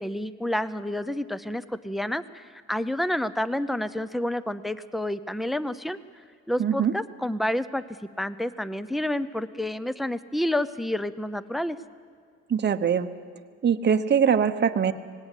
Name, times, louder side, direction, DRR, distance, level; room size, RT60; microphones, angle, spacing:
voice 1, 0.0-6.0 6.5-7.8 8.2-11.8, left 1 dB, ahead, 15 dB, 0.6 m, -29 dB
voice 2, 6.6-6.9 12.5-13.1 13.6-14.9, right 7 dB, 35° right, 8 dB, 0.9 m, -22 dB
19.0 x 17.5 x 8.4 m, 2.1 s
cardioid pair, 90°, 30 cm